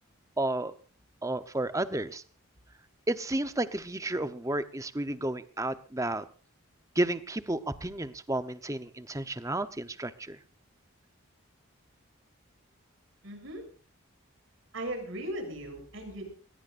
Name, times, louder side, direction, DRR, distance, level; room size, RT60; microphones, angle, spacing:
voice 1, 0.4-0.7 1.2-2.2 3.1-6.3 6.9-10.4, right 1 dB, 15° right, 11 dB, 0.9 m, -32 dB
voice 2, 13.2-13.6 14.7-16.3, right 1 dB, 65° right, 4 dB, 6.9 m, -37 dB
21.5 x 20.5 x 2.6 m, 0.40 s
head